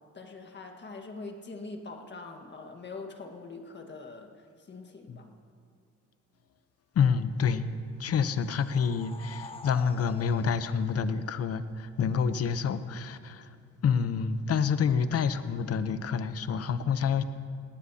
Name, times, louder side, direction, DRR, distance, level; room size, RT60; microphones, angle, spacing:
voice 1, 0.1-4.3 4.7-5.3, left 3 dB, 35° left, 3 dB, 1.6 m, -43 dB
voice 2, 6.9-7.7 8.0-13.5 13.8-17.2, left 6 dB, 55° left, 12 dB, 0.8 m, -28 dB
sound 1, 8.1-11.7, left 4 dB, 20° left, 0.6 m, -48 dB
18.5 x 17.5 x 2.8 m, 2.3 s
cardioid pair, 90°, 30 cm